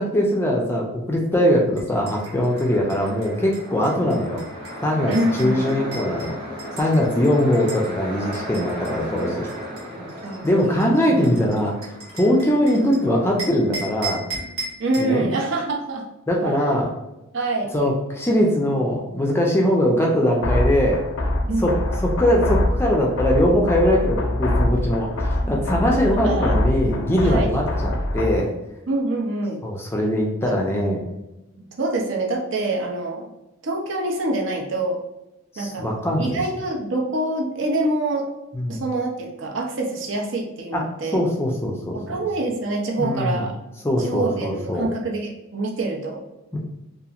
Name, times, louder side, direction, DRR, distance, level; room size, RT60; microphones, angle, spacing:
voice 1, 0.0-4.4 4.8-6.4 6.8-9.5 10.4-11.7 12.2-14.2 15.0-15.3 16.3-16.9 17.7-21.0 21.6-28.5 29.6-31.0 35.5-36.4 38.5-38.8 40.7-40.8 41.1-42.0 43.0-43.5 43.8-44.9 46.5-46.6, equal, 10° left, -1 dB, 0.4 m, -21 dB
sound 1, 1.7-7.9 8.3-13.0 13.4-15.1, right 2 dB, 90° right, 1.3 m, -37 dB
sound 2, 2.1-13.4, equal, 20° right, 0.7 m, -36 dB
voice 2, 5.1-5.7 9.9-10.9 14.8-16.0 16.4-16.7 17.3-17.7 21.5-21.7 26.2-26.5 27.2-27.5 28.9-29.6 30.4-30.6 31.8-33.3 33.6-35.0 35.6-35.9 36.2-38.3 38.7-41.2 41.9-43.5 44.0-46.2, right 2 dB, 60° right, 0 dB, 0.5 m, -26 dB
sound 3, 20.4-28.4, left 1 dB, 75° left, 0.5 m, -24 dB
2.9 x 2.4 x 2.4 m, 0.95 s
head